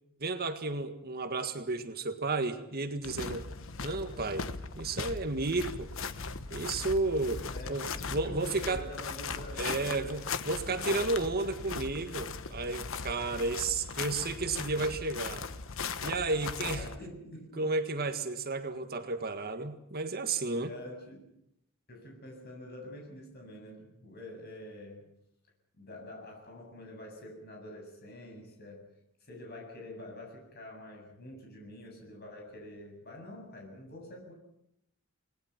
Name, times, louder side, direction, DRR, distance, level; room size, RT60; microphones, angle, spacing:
voice 1, 0.2-3.5 3.8-4.5 4.8-5.9 6.5-8.9 9.6-15.5 16.0-16.8 17.6-20.7, right 3 dB, 45° right, 8 dB, 1.8 m, -32 dB
sound 1, 3.0-17.0, left 4 dB, 70° left, 1.3 m, -38 dB
voice 2, 7.4-10.2 10.6-10.9 13.2-13.4 16.6-17.7 20.7-21.3 21.9-25.1 25.8-28.9 29.2-34.3, left 1 dB, 50° left, 2 dB, 7.7 m, -46 dB
29.0 x 20.0 x 6.0 m, 0.78 s
head